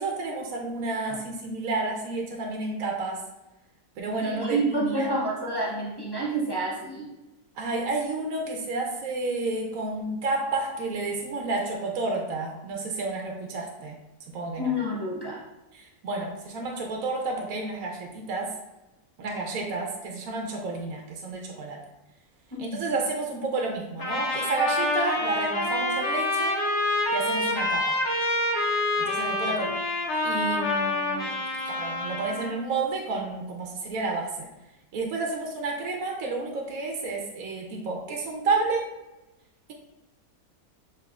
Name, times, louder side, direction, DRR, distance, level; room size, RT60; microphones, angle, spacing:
voice 1, 0.0-3.2 4.0-5.1 7.6-14.0 14.3-14.7 15.7-18.5 19.2-21.8 22.6-26.6 27.1-28.0 29.0-29.7 30.2-31.3 31.7-34.5 34.9-38.8, right 3 dB, 70° right, 1 dB, 1.0 m, -30 dB
voice 2, 4.2-7.1 14.6-15.4 22.5-23.0, right 1 dB, 30° left, -6 dB, 0.4 m, -29 dB
Trumpet, 24.0-32.6, left 2 dB, 65° left, 1.3 m, -27 dB
7.1 x 3.0 x 2.4 m, 0.99 s
omnidirectional pair, 1.6 m